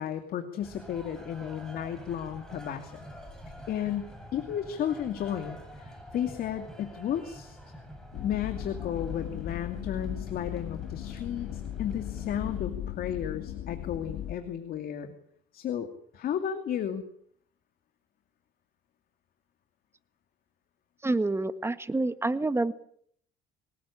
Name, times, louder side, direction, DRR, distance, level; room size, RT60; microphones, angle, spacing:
voice 1, 0.0-3.1 3.7-7.6 8.2-15.1 15.5-17.0, left 9 dB, 60° left, 7 dB, 2.7 m, -33 dB
sound 1, 0.6-12.6, equal, 5° left, 7.8 m, -47 dB
sound 2, 8.1-14.3, left 11 dB, 80° left, 2.0 m, -37 dB
voice 2, 21.0-22.7, right 2 dB, 15° right, 12 dB, 1.6 m, -27 dB
24.0 x 19.0 x 8.7 m, 0.65 s
cardioid pair, 110°, 17 cm